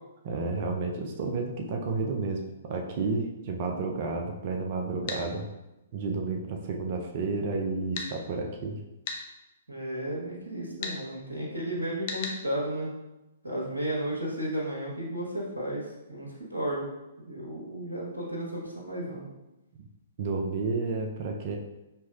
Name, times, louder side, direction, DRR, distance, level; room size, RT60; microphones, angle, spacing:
voice 1, 0.2-5.5 5.9-8.8 20.2-21.6, right 3 dB, 40° right, 2 dB, 0.5 m, -31 dB
sound 1, 5.1-5.2 7.9-8.1 9.0-9.2 10.8-11.0 12.1-12.4, left 4 dB, 40° left, 0.6 m, -34 dB
voice 2, 9.7-12.9 13.4-15.8 16.1-16.9 17.3-19.3, right 1 dB, 75° right, -4 dB, 1.1 m, -33 dB
5.5 x 3.1 x 2.3 m, 0.98 s
figure-of-eight pair, 120°, 0 cm